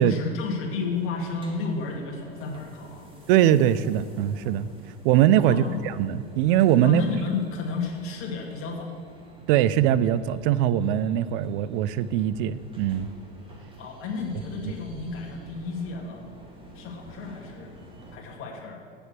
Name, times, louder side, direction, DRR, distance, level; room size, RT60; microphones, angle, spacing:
voice 1, 0.0-3.1 5.4-5.8 6.8-9.0 13.8-16.2 16.7-17.7 18.1-18.8, left 4 dB, 45° left, 0 dB, 1.9 m, -32 dB
sound 1, 0.6-18.2, right 1 dB, 15° right, 1.9 m, -49 dB
voice 2, 3.3-4.7 5.0-7.0 9.5-13.1, right 11 dB, 60° right, 16 dB, 0.5 m, -21 dB
7.1 x 6.8 x 7.4 m, 2.1 s
hypercardioid pair, 90°, 31 cm